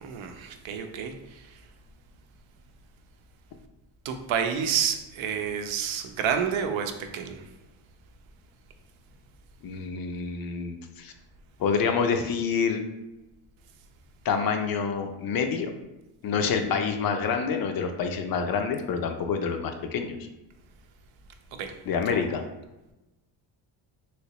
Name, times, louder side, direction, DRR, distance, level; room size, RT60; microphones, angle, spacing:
voice 1, 0.0-1.1 4.0-7.4 21.5-21.7 22.1-22.2, right 7 dB, 70° right, 6 dB, 0.6 m, -29 dB
voice 2, 9.6-11.1 11.6-12.8 14.2-15.7 16.2-20.2 21.9-22.4, left 6 dB, 50° left, 5 dB, 0.4 m, -27 dB
3.1 x 2.9 x 2.9 m, 1.0 s
cardioid pair, 110°, 49 cm